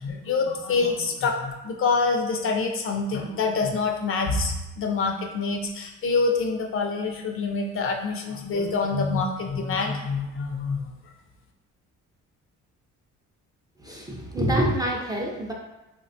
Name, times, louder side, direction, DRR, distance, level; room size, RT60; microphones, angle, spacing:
voice 1, 0.0-10.8, left 4 dB, 45° left, 2 dB, 0.4 m, -26 dB
voice 2, 13.8-15.5, right 1 dB, 15° right, -2 dB, 0.4 m, -26 dB
3.3 x 2.1 x 2.7 m, 1.0 s
cardioid pair, 90°, 30 cm